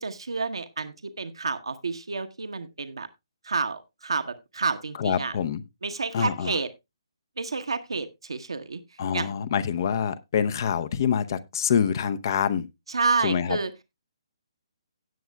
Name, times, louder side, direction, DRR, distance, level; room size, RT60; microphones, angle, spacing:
voice 1, 0.0-3.1 3.4-5.3 5.8-6.7 7.4-8.8 9.1-9.3 12.9-13.7, right 4 dB, 70° right, 1.0 m, -29 dB
voice 2, 5.0-5.6 6.1-6.6 9.0-12.7 13.2-13.6, left 7 dB, 45° left, 0.7 m, -26 dB
17.0 x 8.0 x 2.2 m
figure-of-eight pair, 135°, 3 cm